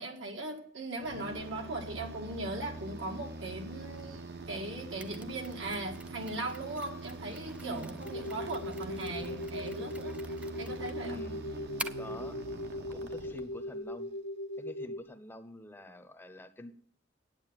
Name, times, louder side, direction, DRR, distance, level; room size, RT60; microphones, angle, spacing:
voice 1, 0.0-10.2 10.6-11.2, right 2 dB, 70° right, 2 dB, 1.8 m, -39 dB
sound 1, 1.0-13.8, right 2 dB, 55° right, 1.1 m, -44 dB
Mechanisms, 5.0-12.2, right 1 dB, 5° right, 0.4 m, -48 dB
voice 2, 7.6-7.9 11.0-11.4 12.0-12.4 12.9-14.1 14.6-16.7, left 1 dB, 10° left, 7 dB, 0.8 m, -46 dB
sound 2, 8.0-15.0, left 1 dB, 60° left, 0.7 m, -39 dB
9.1 x 8.5 x 9.0 m, 0.64 s
head